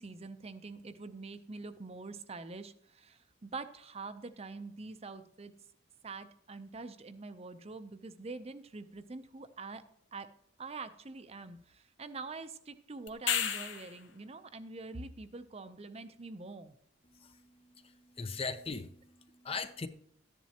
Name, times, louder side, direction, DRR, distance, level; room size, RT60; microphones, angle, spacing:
voice 1, 0.0-5.5 6.0-9.8 10.1-10.3 10.6-16.7, right 3 dB, 30° right, 11 dB, 0.6 m, -45 dB
sound 1, 13.1-14.0 18.7-18.8, left 8 dB, 70° left, 0.9 m, -32 dB
voice 2, 17.8-18.9 19.4-19.9, left 4 dB, 30° left, 11 dB, 0.5 m, -38 dB
13.5 x 10.5 x 2.9 m, 0.71 s
head